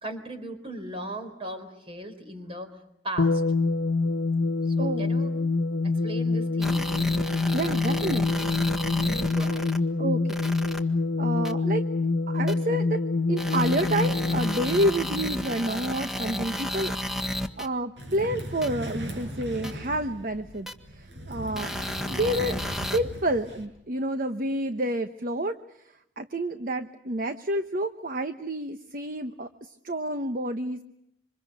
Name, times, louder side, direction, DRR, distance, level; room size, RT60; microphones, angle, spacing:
voice 1, 0.0-2.8 3.0-3.4 4.8-5.3 5.8-6.9 9.0-9.7, right 1 dB, 30° right, 8 dB, 4.2 m, -37 dB
sound 1, 3.2-16.0, left 3 dB, 85° left, 1.2 m, -26 dB
sound 2, 6.6-9.8 10.3-10.8 11.5-11.6 12.5-12.6 13.4-17.7 18.6-18.7 19.6-19.7 20.7-20.8 21.6-23.0, left 1 dB, ahead, 1.5 m, -32 dB
voice 2, 7.5-8.5 10.0-10.4 11.2-11.8 12.3-13.0 13.3-17.3 17.6-21.7 22.1-22.6 22.9-25.6 25.8-30.8, right 1 dB, 45° right, 8 dB, 1.0 m, -29 dB
sound 3, 18.0-23.7, right 1 dB, 65° right, 6.2 m, -38 dB
27.5 x 25.5 x 6.6 m, 0.79 s
head